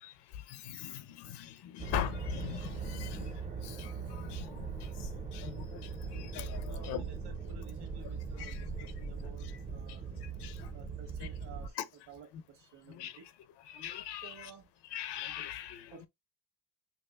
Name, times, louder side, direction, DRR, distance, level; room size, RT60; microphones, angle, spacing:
voice 1, 0.0-5.1 5.3-7.1 8.4-8.9 9.4-9.6 10.2-10.7 11.2-11.3 11.8-11.9 12.3-12.4 12.9-13.2 13.6-14.5 14.9-16.0, left 11 dB, 75° left, 0.8 m, -41 dB
sound 1, 1.8-11.7, right 5 dB, 20° right, 0.4 m, -40 dB
voice 2, 6.6-10.2 10.7-11.8 12.1-13.3 14.2-14.7 15.9-16.1, right 7 dB, 75° right, 1.5 m, -53 dB
5.8 x 2.3 x 2.4 m
cardioid pair, 170°, 41 cm